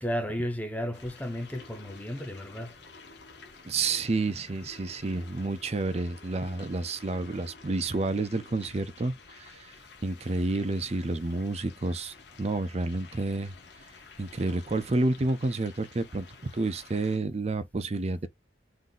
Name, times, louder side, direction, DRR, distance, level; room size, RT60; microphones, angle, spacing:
voice 1, 0.0-2.8, equal, 10° left, 0.8 m, -33 dB
sound 1, 0.9-17.2, left 4 dB, 60° left, 1.0 m, -51 dB
voice 2, 3.6-9.7 10.0-13.5 14.2-16.3 16.5-18.3, right 2 dB, 35° right, 0.5 m, -30 dB
3.7 x 2.7 x 3.8 m
head